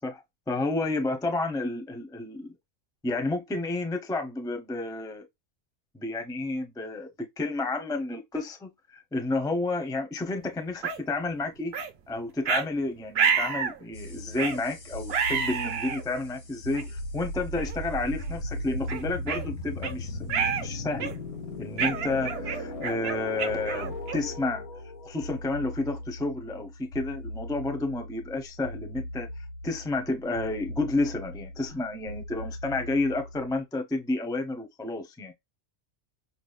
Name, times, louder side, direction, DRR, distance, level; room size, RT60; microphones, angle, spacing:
voice 1, 0.0-2.5 3.0-5.3 5.9-11.8 12.1-21.1 21.6-24.7 25.0-29.3 29.6-35.3, left 2 dB, 5° left, 0.5 m, -31 dB
sound 1, 10.8-11.0 11.7-11.9 12.5-12.7 13.2-13.8 14.4-14.6 15.1-16.0 16.7-16.8 17.6-17.8 18.2-18.3 18.9-19.9 20.3-20.7 21.0-21.3 21.8-24.4, right 6 dB, 55° right, 0.7 m, -29 dB
sound 2, 13.9-33.6, left 1 dB, 80° left, 1.7 m, -38 dB
5.9 x 2.0 x 2.4 m
omnidirectional pair, 1.5 m